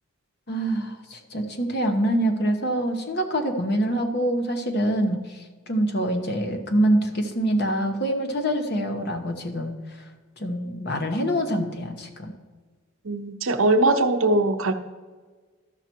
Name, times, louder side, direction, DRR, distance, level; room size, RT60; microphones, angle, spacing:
voice 1, 0.5-9.7 10.4-12.3, right 1 dB, 50° left, 4 dB, 1.1 m, -25 dB
voice 2, 13.0-14.7, right 2 dB, 75° right, 8 dB, 0.7 m, -21 dB
13.5 x 5.8 x 4.5 m, 1.4 s
head